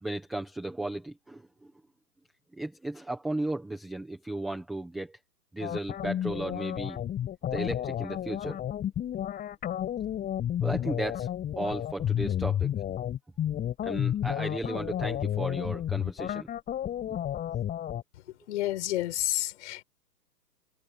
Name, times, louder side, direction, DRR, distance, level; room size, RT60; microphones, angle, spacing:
voice 1, 0.0-1.5 2.5-5.2 5.5-7.0 7.5-8.6 10.6-11.3 11.5-12.7 13.8-16.5, right 2 dB, ahead, 0.4 m, -35 dB
sound 1, 5.6-18.0, left 10 dB, 15° left, 6.2 m, -31 dB
voice 2, 18.5-19.8, left 15 dB, 45° left, 4.7 m, -30 dB
figure-of-eight pair, 130°, 50 cm